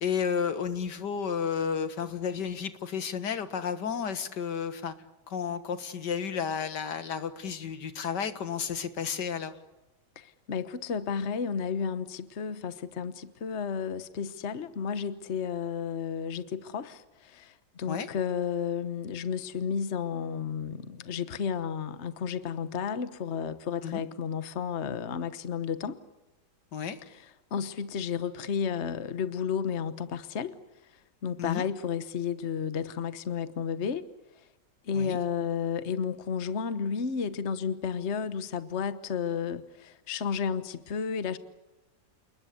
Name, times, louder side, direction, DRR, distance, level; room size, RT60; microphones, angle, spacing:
voice 1, 0.0-4.9 5.3-9.5 17.9-18.1 23.8-24.0 26.7-27.0 31.4-31.7 34.9-35.2, left 7 dB, 75° left, 2.1 m, -32 dB
voice 2, 10.2-26.0 27.5-30.5 31.2-34.0 34.8-41.4, left 7 dB, 45° left, 1.3 m, -32 dB
29.5 x 20.5 x 8.3 m
omnidirectional pair, 1.9 m